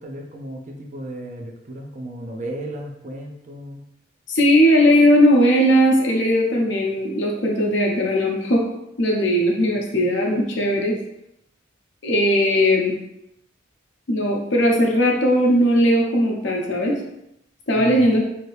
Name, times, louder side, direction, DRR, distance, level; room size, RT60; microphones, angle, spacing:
voice 1, 0.0-3.9 17.7-18.1, right 1 dB, 40° right, 1 dB, 0.5 m, -34 dB
voice 2, 4.3-8.6 9.0-11.0 12.0-12.9 14.1-17.0 17.7-18.2, equal, 65° left, -1 dB, 0.7 m, -18 dB
2.8 x 2.7 x 3.2 m, 0.82 s
head